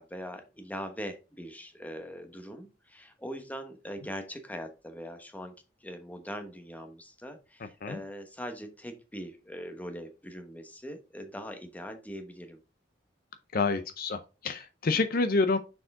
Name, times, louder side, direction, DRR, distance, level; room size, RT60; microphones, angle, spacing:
voice 1, 0.0-5.5 5.8-12.6, equal, 10° left, 1.1 m, -41 dB
voice 2, 13.5-15.6, left 3 dB, 50° left, 0.6 m, -28 dB
6.3 x 4.7 x 3.6 m
head